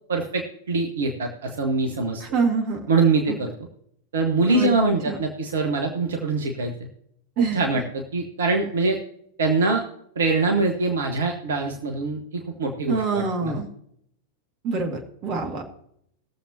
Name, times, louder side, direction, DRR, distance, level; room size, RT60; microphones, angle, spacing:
voice 1, 0.1-2.2 2.9-3.5 4.1-6.7 7.4-9.0 9.4-9.8 10.1-13.6, right 3 dB, 65° right, 2 dB, 1.4 m, -23 dB
voice 2, 2.3-2.8 3.3-3.4 4.5-4.7 5.1-5.2 7.4-7.6 12.9-13.7 14.6-15.7, right 5 dB, 40° right, 3 dB, 2.2 m, -25 dB
21.5 x 7.3 x 2.9 m, 0.71 s
figure-of-eight pair, 90°, 0 cm